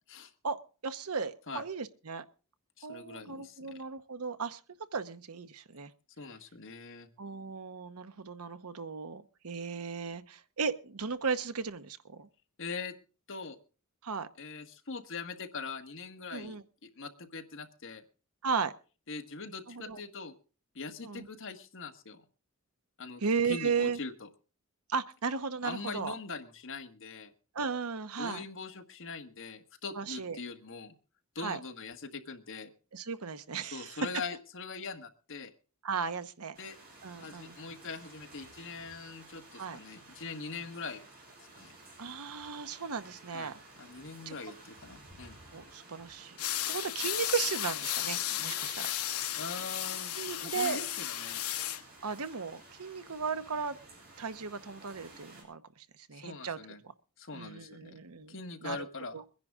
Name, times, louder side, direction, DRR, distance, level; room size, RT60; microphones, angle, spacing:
voice 1, 0.4-2.2 2.8-4.6 4.9-5.9 7.2-12.3 14.0-14.3 16.3-16.6 18.4-18.7 19.7-20.0 21.0-21.3 23.2-24.0 24.9-26.1 27.5-28.4 30.0-30.4 31.4-31.6 32.9-34.0 35.8-36.6 37.0-37.6 39.6-39.8 42.0-43.5 44.3-44.4 45.5-46.4 46.7-48.9 50.2-50.8 52.0-53.8 54.2-56.6 57.3-58.4 58.6-58.9 59.1-59.2, right 5 dB, 85° right, 12 dB, 0.9 m, -35 dB
voice 2, 2.8-3.8 6.2-7.1 12.6-12.9 13.3-13.6 14.4-18.0 19.1-20.3 20.7-22.2 23.0-24.3 25.6-27.3 28.2-30.9 31.3-32.7 33.7-35.5 36.6-36.8 37.2-41.0 41.4-41.7 43.3-45.4 49.4-51.4 56.1-56.8 57.2-58.0 58.3-59.2, left 4 dB, 60° left, 6 dB, 1.5 m, -42 dB
sound 1, 36.5-55.4, right 2 dB, 45° right, 7.7 m, -54 dB
sound 2, 46.4-51.8, left 12 dB, 85° left, 1.0 m, -34 dB
23.0 x 10.5 x 3.6 m, 0.36 s
head